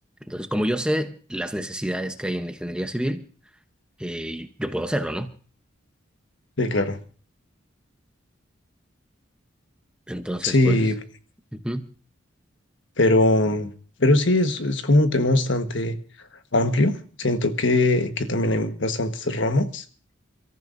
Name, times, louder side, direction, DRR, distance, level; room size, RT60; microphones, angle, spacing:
voice 1, 0.3-3.2 4.0-5.3 10.1-10.8 11.5-11.8, equal, 5° right, 0.9 m, -28 dB
voice 2, 6.6-7.0 10.4-11.0 13.0-13.7 14.0-16.0 16.5-19.8, left 2 dB, 65° left, 1.4 m, -21 dB
29.5 x 14.0 x 2.6 m
head